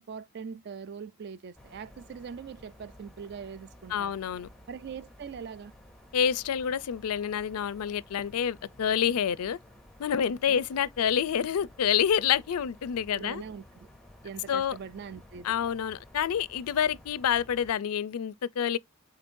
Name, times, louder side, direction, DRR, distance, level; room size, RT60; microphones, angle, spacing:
voice 1, 0.0-4.2 4.7-5.7 10.5-10.6 13.1-13.9 14.2-15.5, right 6 dB, 45° right, 0.3 m, -42 dB
sound 1, 1.5-17.7, left 1 dB, ahead, 0.6 m, -54 dB
voice 2, 3.9-4.5 6.1-9.6 10.0-13.4 14.5-14.8 15.4-18.8, left 8 dB, 85° left, 0.4 m, -28 dB
5.2 x 3.9 x 2.5 m
head